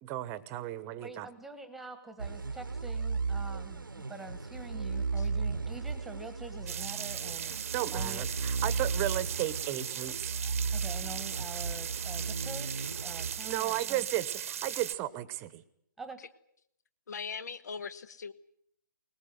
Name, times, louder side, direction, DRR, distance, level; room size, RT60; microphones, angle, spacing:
voice 1, 0.0-1.3 7.7-10.4 13.4-15.6, right 14 dB, 20° right, 16 dB, 1.1 m, -34 dB
voice 2, 1.0-7.6 7.9-8.2 10.7-14.0 16.0-16.2, right 2 dB, ahead, 11 dB, 1.5 m, -46 dB
sound 1, 2.2-14.0, right 4 dB, 80° right, 1.1 m, -35 dB
sound 2, 6.7-15.0, right 9 dB, 40° right, 1.0 m, -38 dB
voice 3, 17.1-18.3, left 6 dB, 55° left, 15 dB, 1.2 m, -40 dB
21.0 x 20.5 x 9.4 m, 0.73 s
figure-of-eight pair, 140°, 11 cm